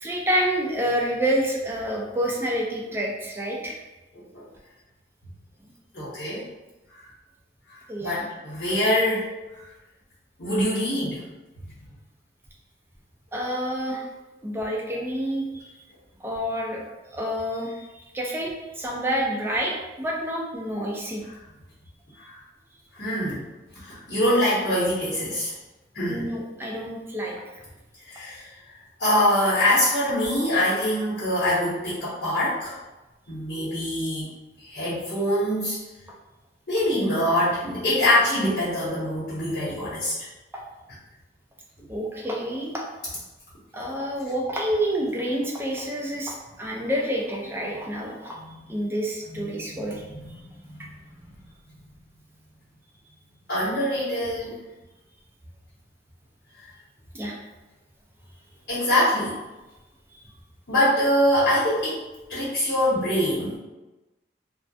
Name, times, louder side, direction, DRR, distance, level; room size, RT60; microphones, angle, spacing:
voice 1, 0.0-3.8 7.9-8.3 13.3-14.1 14.4-15.7 16.2-16.8 17.1-21.2 26.1-27.4 40.5-40.6 41.9-42.8 43.7-48.4 48.7-50.0 57.1-57.3 60.1-60.2, equal, 15° right, -2 dB, 0.3 m, -28 dB
voice 2, 5.9-6.4 7.7-9.3 9.5-9.6 10.4-11.2 22.2-22.4 22.9-23.4 23.7-25.5 25.9-26.3 28.1-28.5 29.0-32.8 33.3-34.3 34.6-35.8 36.7-40.1 48.3-48.6 49.3-49.8 50.1-50.3 50.7-50.9 51.2-51.3 53.5-54.6 58.7-59.4 60.7-62.0 62.3-63.6, left 1 dB, 65° left, -11 dB, 0.8 m, -24 dB
2.3 x 2.1 x 2.6 m, 1.1 s
head